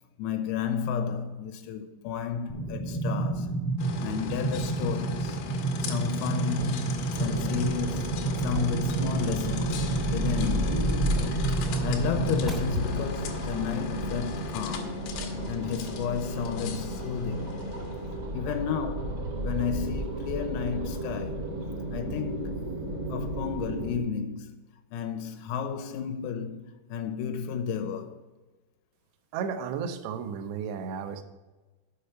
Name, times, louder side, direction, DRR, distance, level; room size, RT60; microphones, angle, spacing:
voice 1, 0.2-3.5 4.0-5.4 5.8-9.8 10.1-10.9 11.6-15.0 15.3-17.6 18.3-21.5 21.9-22.6 23.1-24.6 24.9-28.2, left 7 dB, 90° left, 3.6 m, -32 dB
sound 1, 2.5-12.5, right 3 dB, ahead, 0.8 m, -30 dB
sound 2, 3.8-18.2, left 5 dB, 70° left, 2.5 m, -40 dB
sound 3, 7.1-24.0, right 1 dB, 55° right, 1.1 m, -33 dB
voice 2, 29.3-31.2, right 6 dB, 80° right, 2.5 m, -33 dB
8.3 x 5.7 x 8.0 m
omnidirectional pair, 6.0 m